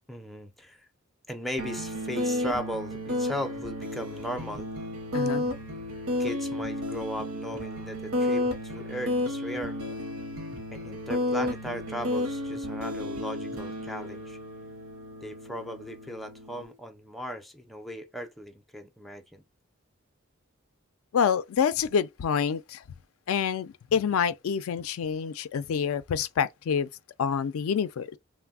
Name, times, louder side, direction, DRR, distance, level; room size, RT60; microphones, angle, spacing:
voice 1, 0.1-0.9 1.3-4.7 6.2-9.8 10.7-14.4 15.2-19.4, equal, ahead, 0.3 m, -37 dB
sound 1, 1.6-16.7, left 1 dB, 80° right, 0.7 m, -32 dB
voice 2, 5.1-5.5 21.1-22.8 23.3-26.9 27.2-28.2, left 7 dB, 75° left, 0.3 m, -27 dB
3.2 x 2.0 x 2.3 m
head